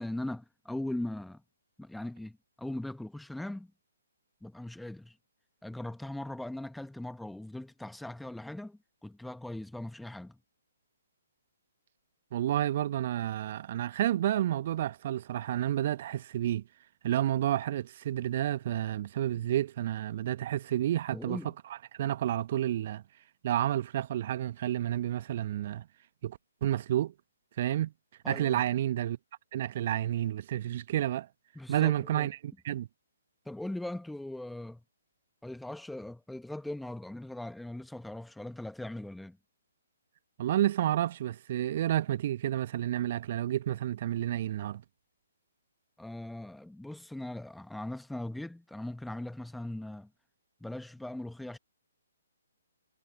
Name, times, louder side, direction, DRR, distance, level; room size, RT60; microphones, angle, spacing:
voice 1, 0.0-1.4 1.8-3.7 4.4-5.2 5.6-10.4 21.1-21.5 28.2-28.6 31.5-32.3 33.4-34.8 35.4-39.4 46.0-50.1 50.6-51.6, left 1 dB, ahead, 1.5 m, -40 dB
voice 2, 12.3-16.7 17.0-21.4 21.9-23.0 23.4-25.9 26.2-27.1 27.6-27.9 28.2-29.2 29.5-31.3 31.7-32.4 32.6-32.9 40.4-44.8, right 12 dB, 40° right, 1.5 m, -30 dB
figure-of-eight pair, 130°, 0 cm